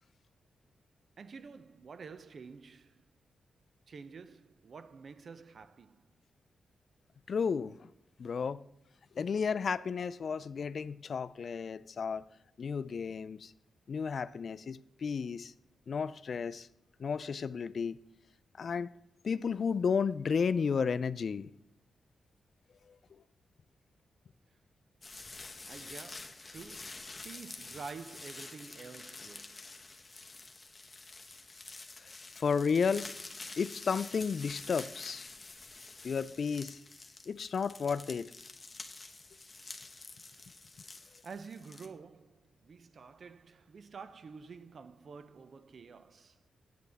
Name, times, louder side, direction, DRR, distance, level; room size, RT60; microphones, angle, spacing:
voice 1, 1.2-3.0 3.9-6.0 25.7-29.7 40.3-40.5 40.8-46.4, right 5 dB, 55° right, 0.5 m, -49 dB
voice 2, 7.3-7.9 8.2-8.6 9.2-12.2 12.6-13.5 13.9-15.5 15.9-16.7 17.0-18.0 18.6-18.9 19.2-21.5 32.4-33.1 33.6-35.3 36.0-36.8 37.3-38.3, left 6 dB, 55° left, 0.3 m, -32 dB
sound 1, 25.0-41.9, left 3 dB, 30° left, 0.9 m, -48 dB
9.3 x 7.7 x 3.4 m
cardioid pair, 105°, 0 cm